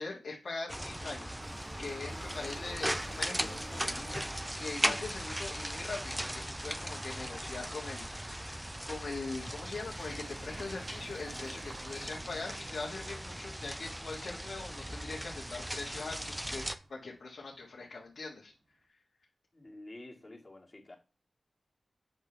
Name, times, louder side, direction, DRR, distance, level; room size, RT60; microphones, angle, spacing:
voice 1, 0.0-16.6 16.9-18.5, left 3 dB, 75° left, -3 dB, 1.7 m, -42 dB
sound 1, 0.7-16.8, equal, 10° right, 0.6 m, -38 dB
sound 2, 0.8-18.4, right 2 dB, 75° right, 3.3 m, -57 dB
sound 3, 1.4-4.8, right 2 dB, 60° right, 2.1 m, -50 dB
voice 2, 19.5-21.0, left 1 dB, 35° left, 0 dB, 2.1 m, -49 dB
8.0 x 5.9 x 3.4 m, 0.31 s
wide cardioid pair, 80°, 0 cm